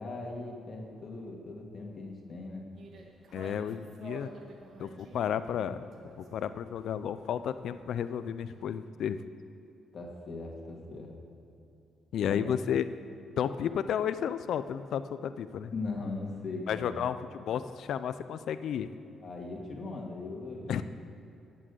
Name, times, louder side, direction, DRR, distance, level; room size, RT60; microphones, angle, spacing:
voice 1, 0.0-2.7 9.9-11.1 12.3-12.4 15.7-17.1 19.2-20.8, left 3 dB, 45° left, 0 dB, 2.0 m, -39 dB
sound 1, 2.7-8.9, right 3 dB, 60° right, 1.8 m, -51 dB
voice 2, 3.3-4.3 4.8-5.8 6.2-9.2 12.1-12.8 13.4-15.7 16.7-18.9 20.7-20.8, left 9 dB, 70° left, 12 dB, 0.5 m, -32 dB
11.0 x 7.6 x 8.5 m, 2.7 s
cardioid pair, 90°, 0 cm